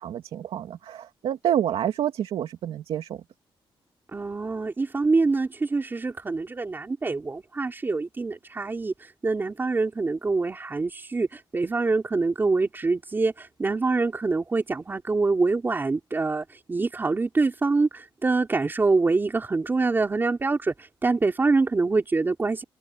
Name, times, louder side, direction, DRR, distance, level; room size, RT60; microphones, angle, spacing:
voice 1, 0.0-3.2, right 10 dB, 85° right, 2.4 m, -28 dB
voice 2, 4.1-22.6, right 3 dB, 25° right, 3.7 m, -25 dB
wide cardioid pair, 150°, 9 cm